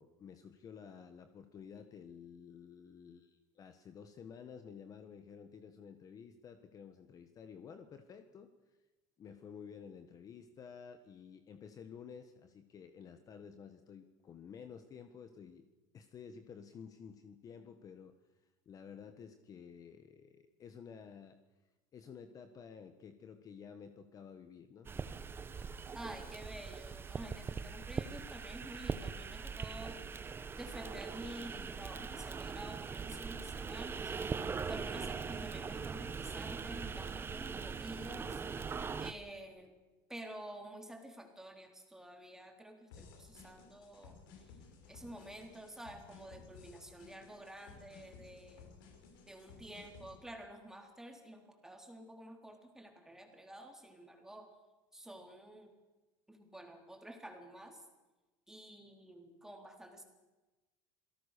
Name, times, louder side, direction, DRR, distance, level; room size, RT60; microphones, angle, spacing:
voice 1, 0.0-8.5 9.2-15.7 15.9-18.1 18.6-21.4 21.9-24.9, left 7 dB, 30° left, 9 dB, 1.4 m, -52 dB
sound 1, 24.8-39.1, right 5 dB, 20° right, 1.0 m, -41 dB
voice 2, 25.9-30.0 30.6-38.6 39.0-39.7 40.1-44.2 44.9-48.7 49.3-54.5 54.9-55.7 56.3-57.9 58.5-60.0, right 1 dB, 5° right, 3 dB, 3.8 m, -50 dB
sound 2, 42.9-50.2, left 5 dB, 85° left, 6.2 m, -57 dB
27.0 x 18.0 x 6.8 m, 1.2 s
supercardioid pair, 135°, 11 cm